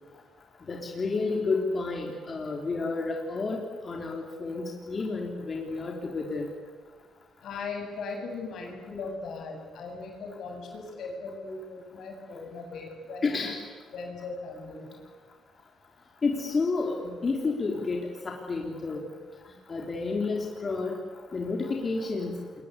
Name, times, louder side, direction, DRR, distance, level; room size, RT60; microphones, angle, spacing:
voice 1, 0.7-6.5 12.3-12.4 13.2-13.6 16.2-19.0 19.7-21.0 21.3-22.4, left 3 dB, 35° left, 0 dB, 3.7 m, -30 dB
voice 2, 7.4-13.4 13.9-14.9, left 3 dB, 75° left, 2 dB, 7.6 m, -38 dB
28.0 x 22.5 x 8.4 m, 1.5 s
cardioid pair, 90°, 0 cm